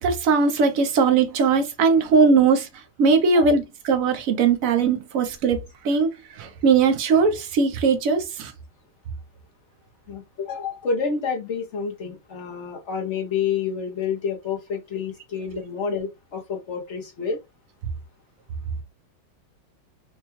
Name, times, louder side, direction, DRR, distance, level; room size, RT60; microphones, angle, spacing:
voice 1, 0.0-8.5, right 5 dB, 60° right, 0.9 m, -20 dB
voice 2, 10.1-17.4, left 6 dB, 55° left, 0.8 m, -29 dB
4.5 x 2.2 x 3.0 m
omnidirectional pair, 2.2 m